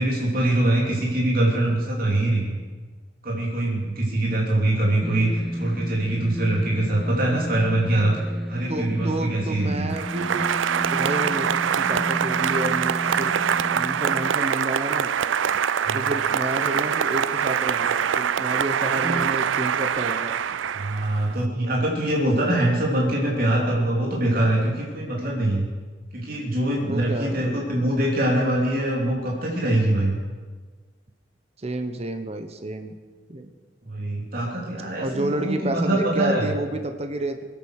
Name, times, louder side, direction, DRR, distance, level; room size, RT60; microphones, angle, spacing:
voice 1, 0.0-2.6 3.2-5.3 5.6-8.2 8.5-9.9 15.8-16.0 18.8-19.2 20.8-25.7 26.1-30.2 33.8-36.4, right 1 dB, 50° right, -3 dB, 3.0 m, -23 dB
sound 1, 5.0-14.3, equal, ahead, 0.5 m, -32 dB
voice 2, 8.7-10.5 10.9-13.3 13.7-15.1 15.9-20.3 26.9-27.7 31.6-32.9 33.3-33.5 35.0-37.4, right 1 dB, 35° right, 7 dB, 1.0 m, -30 dB
Applause, 9.9-21.4, right 8 dB, 90° right, 0.5 m, -24 dB
21.5 x 9.0 x 6.5 m, 1.4 s
head